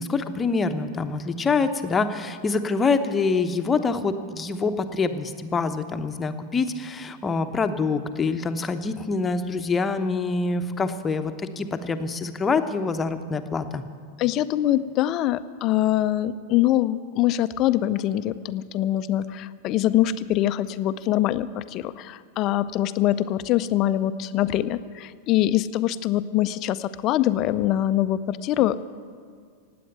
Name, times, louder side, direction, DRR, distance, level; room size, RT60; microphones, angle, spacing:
voice 1, 0.0-13.8, left 4 dB, 15° left, 8 dB, 0.9 m, -25 dB
voice 2, 14.2-28.8, left 13 dB, 35° left, 14 dB, 0.5 m, -23 dB
17.5 x 8.6 x 9.0 m, 2.1 s
figure-of-eight pair, 90°, 0 cm